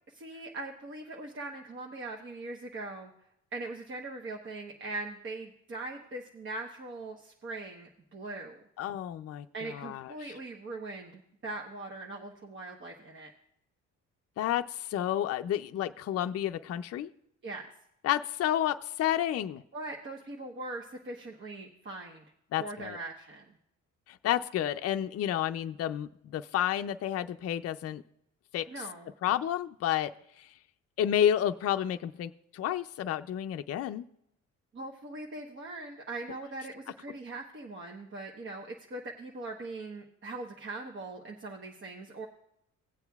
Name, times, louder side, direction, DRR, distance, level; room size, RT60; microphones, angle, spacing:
voice 1, 0.1-3.1 3.5-8.6 9.5-13.3 17.4-17.6 19.7-22.2 22.6-23.4 28.7-29.1 34.7-42.3, right 2 dB, 40° right, 0 dB, 1.1 m, -41 dB
voice 2, 8.8-10.3 14.4-17.1 18.0-19.6 22.5-23.0 24.1-28.0 28.5-28.8 29.2-30.1 30.4-30.5 31.0-34.1, left 11 dB, 55° left, 8 dB, 0.5 m, -30 dB
18.0 x 7.9 x 2.3 m, 0.77 s
cardioid pair, 90°, 30 cm